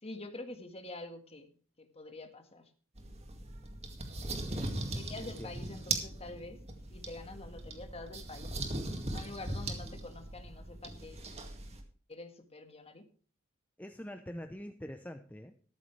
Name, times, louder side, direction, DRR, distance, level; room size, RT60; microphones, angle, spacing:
voice 1, 0.0-1.5 1.8-2.7 4.9-6.6 6.9-8.5 9.1-11.3 12.1-13.1, left 2 dB, 30° left, 7 dB, 1.7 m, -46 dB
sound 1, 3.0-11.8, right 2 dB, 30° right, 2.1 m, -39 dB
voice 2, 4.3-4.9 5.2-5.5 13.8-15.6, equal, 10° left, 6 dB, 0.7 m, -45 dB
13.5 x 13.0 x 3.3 m, 0.42 s
head